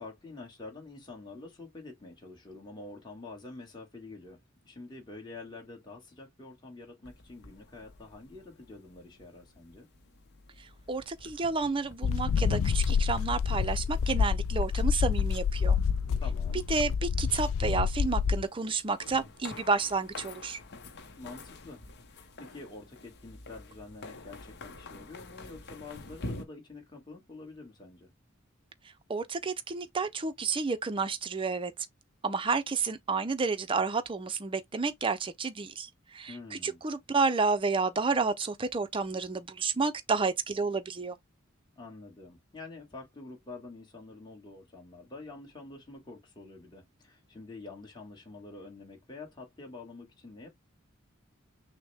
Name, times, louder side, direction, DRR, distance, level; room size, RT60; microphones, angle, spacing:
voice 1, 0.0-4.4 4.6-9.9 16.2-16.6 21.2-21.8 22.1-28.1 36.3-36.8 41.7-50.5, left 3 dB, 20° left, 1.5 m, -47 dB
sound 1, 7.0-26.4, left 2 dB, 55° left, 0.8 m, -48 dB
voice 2, 10.6-15.8 16.7-20.6 29.1-31.7 32.2-41.2, right 4 dB, 25° right, 0.5 m, -30 dB
sound 2, 12.0-18.4, left 6 dB, 70° left, 0.3 m, -28 dB
6.1 x 2.1 x 3.4 m
head